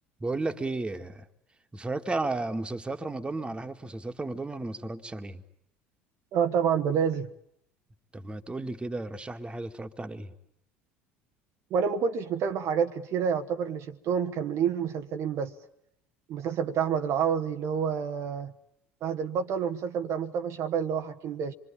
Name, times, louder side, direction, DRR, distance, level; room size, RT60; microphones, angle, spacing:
voice 1, 0.2-1.3 1.7-5.4 8.1-10.3, right 2 dB, 15° right, 2.0 m, -33 dB
voice 2, 6.3-7.3 11.7-15.5 16.3-18.5 19.0-21.5, right 7 dB, 50° right, 1.3 m, -28 dB
26.5 x 24.5 x 8.7 m
figure-of-eight pair, 65°, 6 cm